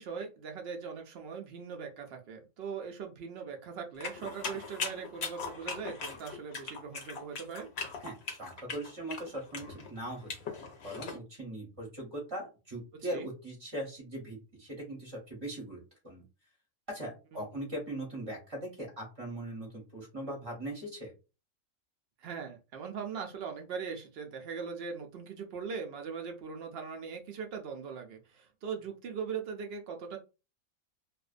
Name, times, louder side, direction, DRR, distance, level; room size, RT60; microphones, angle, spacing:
voice 1, 0.0-7.7 13.0-13.3 22.2-30.2, right 6 dB, 65° right, 4 dB, 0.6 m, -40 dB
sound 1, 4.0-11.2, left 5 dB, 60° left, 0.8 m, -40 dB
voice 2, 8.0-10.3 10.8-16.2 16.9-21.1, right 1 dB, 25° right, -1 dB, 0.6 m, -40 dB
2.5 x 2.1 x 2.4 m, 0.30 s
omnidirectional pair, 1.5 m